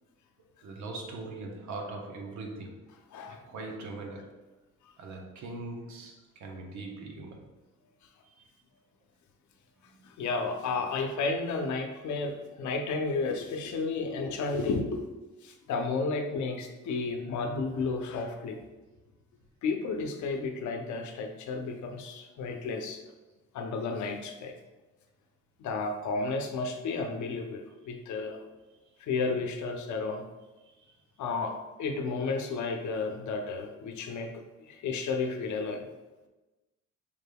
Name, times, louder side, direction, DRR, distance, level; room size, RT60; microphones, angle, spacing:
voice 1, 0.6-2.9 3.5-4.4 5.0-7.5 8.2-8.5 9.9-10.1 30.6-31.0, right 2 dB, 70° right, 1 dB, 0.9 m, -41 dB
voice 2, 3.1-3.4 10.0-15.1 15.4-18.6 19.6-23.0 23.5-24.5 25.6-28.4 29.0-30.3 31.2-34.3 34.6-35.9, left 4 dB, 70° left, 4 dB, 0.7 m, -32 dB
5.0 x 3.4 x 2.2 m, 1.1 s
cardioid pair, 90°, 30 cm